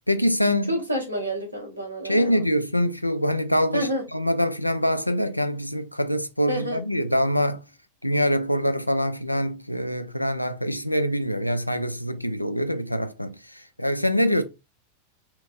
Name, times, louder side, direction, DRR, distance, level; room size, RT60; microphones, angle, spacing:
voice 1, 0.1-0.8 2.0-7.6 8.0-13.4 13.8-14.4, equal, 90° left, 0.3 m, -24 dB
voice 2, 0.7-2.4 3.7-4.0 6.5-6.8, equal, 90° right, 1.1 m, -28 dB
4.4 x 2.6 x 2.5 m
figure-of-eight pair, 90°, 0 cm